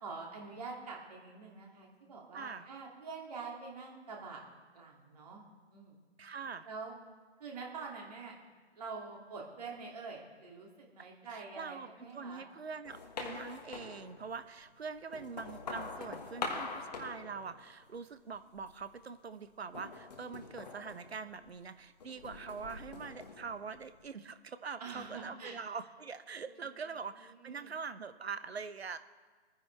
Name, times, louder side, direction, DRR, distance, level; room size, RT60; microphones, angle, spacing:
voice 1, 0.0-4.4 4.7-5.4 5.7-6.0 6.7-7.0 7.4-8.4 8.7-12.5 24.8-25.6 26.5-26.7 27.3-27.7, right 4 dB, 35° right, -1 dB, 2.6 m, -46 dB
voice 2, 2.3-2.7 6.2-6.7 11.3-29.0, right 5 dB, 65° right, 12 dB, 0.9 m, -44 dB
sound 1, 12.8-14.5 15.0-18.0 18.3-18.9 19.7-21.6 22.0-24.1, left 4 dB, 35° left, 1.4 m, -44 dB
24.5 x 9.8 x 3.4 m, 1.5 s
figure-of-eight pair, 155°, 34 cm